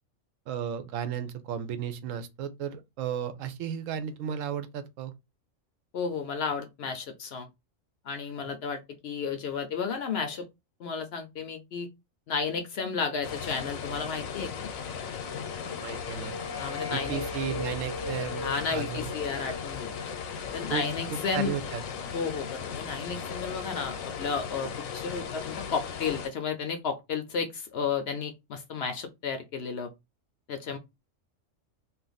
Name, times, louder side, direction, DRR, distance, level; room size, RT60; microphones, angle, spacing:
voice 1, 0.5-5.1 15.8-16.4 16.9-19.1 20.7-21.8, right 8 dB, 75° right, 0.9 m, -34 dB
voice 2, 5.9-7.5 8.0-10.5 10.8-11.9 12.3-14.7 16.6-17.2 18.4-20.1 20.5-21.6 22.1-29.9 30.5-30.8, left 5 dB, 65° left, 0.7 m, -33 dB
sound 1, 13.2-26.3, left 7 dB, 85° left, 1.0 m, -37 dB
sound 2, 14.9-21.7, left 3 dB, 25° left, 0.5 m, -40 dB
2.5 x 2.4 x 3.8 m
omnidirectional pair, 1.4 m